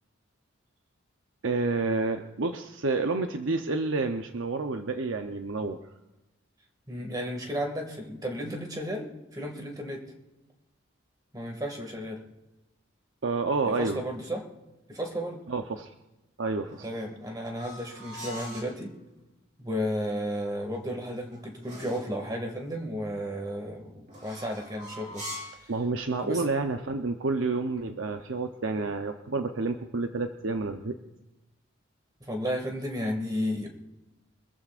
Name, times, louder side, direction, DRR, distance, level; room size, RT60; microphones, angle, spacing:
voice 1, 1.4-5.8 13.2-14.0 15.5-15.9 16.4-16.9 25.7-31.0, right 3 dB, 80° right, 5 dB, 0.8 m, -29 dB
voice 2, 6.9-10.0 11.3-12.2 13.6-14.5 14.9-15.4 16.8-18.9 19.6-25.2 25.6-25.7 26.2-26.4 32.2-33.7, equal, 20° right, 2 dB, 2.1 m, -33 dB
sound 1, 16.6-18.8 20.7-22.2 24.1-25.7, left 1 dB, 40° right, 4.5 m, -43 dB
25.0 x 14.5 x 2.5 m, 1.0 s
head